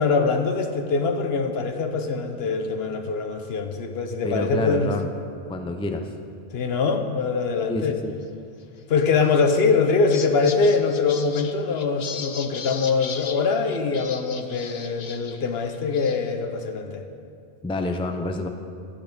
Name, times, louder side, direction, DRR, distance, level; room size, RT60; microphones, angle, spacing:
voice 1, 0.0-4.9 6.5-8.0 8.9-17.0, left 4 dB, 70° left, 6 dB, 1.1 m, -23 dB
voice 2, 4.2-5.1 5.5-6.1 7.7-8.1 17.6-18.5, left 2 dB, 5° left, 6 dB, 0.5 m, -28 dB
sound 1, 9.2-9.5 9.9-15.4 15.7-16.3, left 6 dB, 50° left, 0.6 m, -38 dB
11.5 x 10.5 x 5.2 m, 2.6 s
omnidirectional pair, 1.1 m